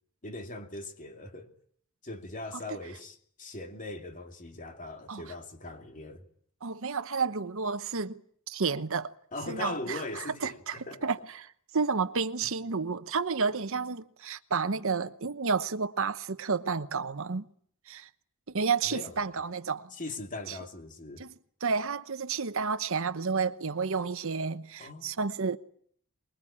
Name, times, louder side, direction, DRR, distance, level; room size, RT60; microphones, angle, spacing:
voice 1, 0.2-1.5 2.0-6.2 9.3-11.1 12.4-12.5 18.8-19.4 19.9-21.2 24.8-25.3, left 2 dB, 35° left, 2.7 m, -40 dB
voice 2, 6.6-8.2 8.5-9.1 9.5-17.5 17.9-18.1 18.5-19.9 20.5-20.6 21.2-21.3 21.6-25.6, right 5 dB, 65° right, 1.0 m, -31 dB
24.5 x 22.0 x 8.7 m
head